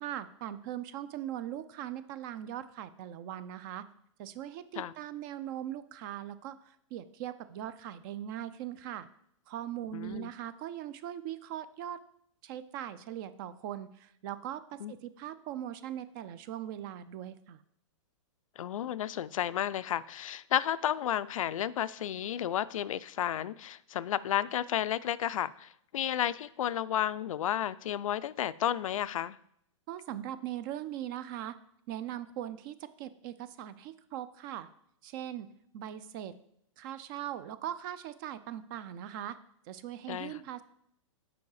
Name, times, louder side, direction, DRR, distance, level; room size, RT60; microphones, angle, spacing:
voice 1, 0.0-3.9 4.2-9.1 9.5-12.0 12.4-17.6 29.9-31.5 31.9-34.7 35.0-35.5 35.7-36.3 36.8-39.4 39.7-40.6, right 11 dB, 40° right, 0.5 m, -40 dB
voice 2, 9.9-10.3 14.8-14.9 18.6-29.4 40.1-40.4, left 11 dB, 80° left, 0.4 m, -32 dB
7.0 x 4.8 x 4.8 m
hypercardioid pair, 140°, 17 cm